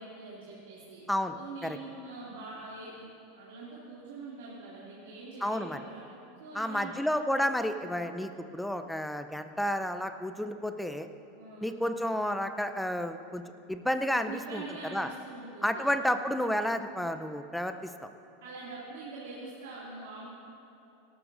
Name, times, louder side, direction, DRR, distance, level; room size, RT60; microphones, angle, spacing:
voice 1, 0.0-1.0 1.4-3.1 3.3-6.0 6.4-7.0 11.4-11.8 14.3-15.8 18.4-20.3, right 3 dB, 75° right, -7 dB, 2.5 m, -44 dB
voice 2, 1.1-1.8 5.4-5.8 6.5-11.1 11.6-13.4 13.7-14.6 14.9-15.1 15.6-17.9, equal, 5° left, 9 dB, 0.6 m, -31 dB
18.5 x 12.0 x 2.7 m, 2.7 s
hypercardioid pair, 95°, 0 cm